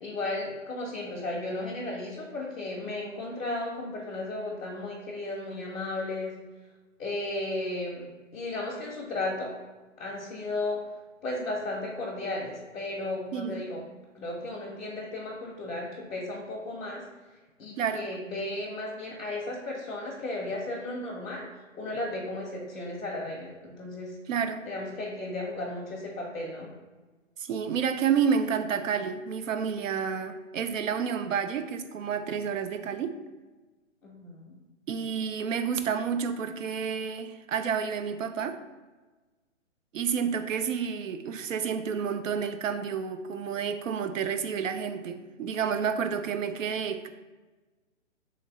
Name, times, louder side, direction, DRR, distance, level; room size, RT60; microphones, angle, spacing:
voice 1, 0.0-6.3 7.0-8.0 8.3-9.6 10.0-10.8 11.2-13.8 14.1-17.0 17.6-21.5 21.7-24.1 24.6-26.7 34.0-34.5, left 2 dB, 5° left, -10 dB, 0.5 m, -34 dB
voice 2, 13.3-13.6 17.8-18.1 24.3-24.7 27.4-33.2 34.9-38.6 39.9-47.1, right 7 dB, 75° right, 9 dB, 0.5 m, -30 dB
3.2 x 3.2 x 3.6 m, 1.3 s
hypercardioid pair, 140°, 39 cm